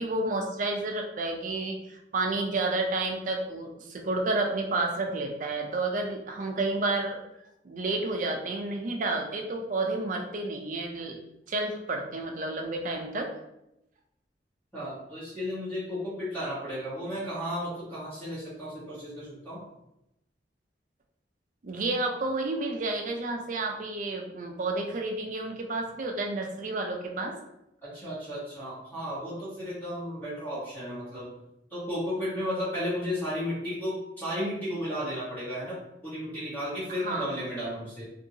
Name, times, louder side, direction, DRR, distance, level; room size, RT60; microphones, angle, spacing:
voice 1, 0.0-7.2 7.6-11.2 11.5-13.3 21.6-27.4 36.9-37.4, right 2 dB, 45° right, 2 dB, 0.4 m, -30 dB
voice 2, 14.7-19.6 27.8-31.3 31.7-35.7 36.0-38.0, equal, 10° left, -12 dB, 1.1 m, -34 dB
2.7 x 2.7 x 2.7 m, 0.87 s
head